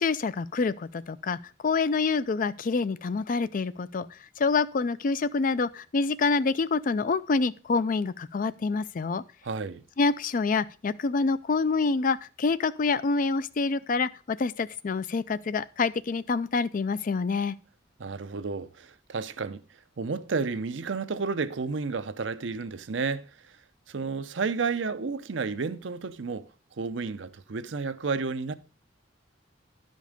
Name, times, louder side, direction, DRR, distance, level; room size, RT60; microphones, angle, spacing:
voice 1, 0.0-1.4 1.6-4.1 4.4-9.2 10.0-17.5, left 4 dB, 45° left, 0.4 m, -27 dB
voice 2, 9.4-9.8 18.0-19.6 20.0-23.3 23.9-26.5 26.8-28.5, right 4 dB, 70° right, 0.6 m, -31 dB
11.5 x 5.3 x 5.1 m
head